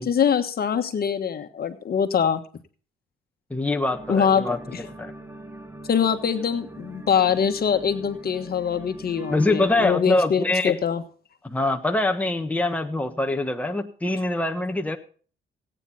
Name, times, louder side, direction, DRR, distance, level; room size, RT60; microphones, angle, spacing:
voice 1, 0.0-2.4 4.1-4.5 4.7-4.8 5.9-11.0, left 7 dB, 50° left, 7 dB, 1.4 m, -23 dB
voice 2, 3.5-5.1 9.3-10.8 11.4-15.0, left 2 dB, 5° left, 4 dB, 1.3 m, -24 dB
sound 1, 3.9-10.0, right 2 dB, 10° right, 1.5 m, -41 dB
17.0 x 9.1 x 4.2 m, 0.41 s
cardioid pair, 90°, 20 cm